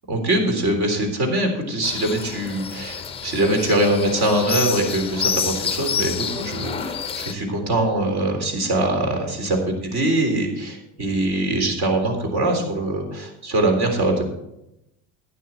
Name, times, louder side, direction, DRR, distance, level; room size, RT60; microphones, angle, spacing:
voice 1, 0.1-9.6 9.9-14.2, right 1 dB, 50° right, 3 dB, 3.6 m, -22 dB
sound 1, 1.8-7.3, left 7 dB, 15° left, 0.7 m, -28 dB
12.0 x 9.9 x 4.4 m, 0.85 s
cardioid pair, 140°, 36 cm